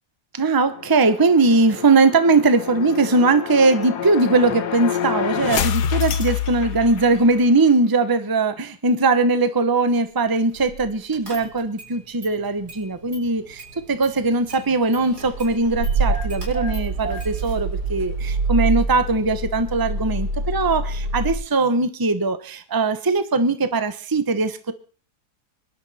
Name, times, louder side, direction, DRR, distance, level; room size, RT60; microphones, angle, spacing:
voice 1, 0.3-24.7, right 3 dB, 15° right, 11 dB, 0.9 m, -20 dB
sound 1, 0.7-7.4, left 8 dB, 85° left, 1.5 m, -27 dB
Car / Engine starting, 10.6-10.8 11.1-11.9 12.2-13.3 13.6-21.3, right 3 dB, 75° right, 4.9 m, -26 dB
23.5 x 11.5 x 4.3 m, 0.41 s
omnidirectional pair, 1.7 m